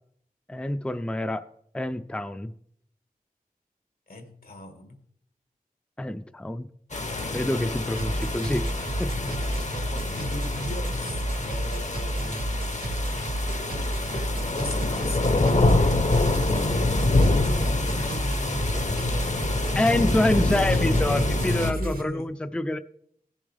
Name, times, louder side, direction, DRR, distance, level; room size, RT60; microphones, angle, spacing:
voice 1, 0.5-1.5 1.7-2.5 6.0-6.7 7.2-8.7 9.0-9.1 9.5-9.7 19.8-22.8, left 1 dB, 5° left, 10 dB, 0.4 m, -27 dB
voice 2, 4.1-5.0 9.2-12.2 14.5-17.3 17.6-18.7 21.6-22.3, left 1 dB, 80° left, 5 dB, 1.7 m, -38 dB
sound 1, 6.9-21.7, left 2 dB, 50° left, 0.9 m, -26 dB
sound 2, 8.0-22.0, right 1 dB, 75° right, 1.1 m, -31 dB
16.5 x 7.2 x 3.4 m, 0.68 s
wide cardioid pair, 60°, 15 cm